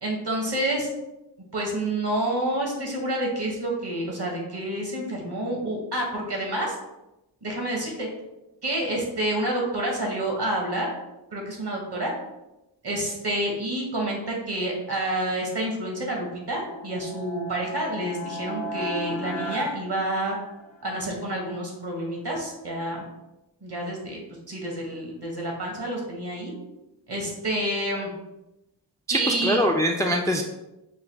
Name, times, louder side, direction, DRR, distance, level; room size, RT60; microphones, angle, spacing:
voice 1, 0.0-0.9 1.5-6.7 7.4-8.1 8.6-10.9 11.3-12.1 12.8-20.3 20.8-23.0 23.6-24.2 24.5-26.5 27.1-28.1 29.1-29.6, right 1 dB, 60° right, 0 dB, 1.3 m, -28 dB
sound 1, 16.4-20.8, left 1 dB, 80° left, 0.8 m, -35 dB
voice 2, 29.1-30.4, equal, 10° left, 2 dB, 0.3 m, -23 dB
4.9 x 2.3 x 3.4 m, 0.94 s
wide cardioid pair, 45°, 46 cm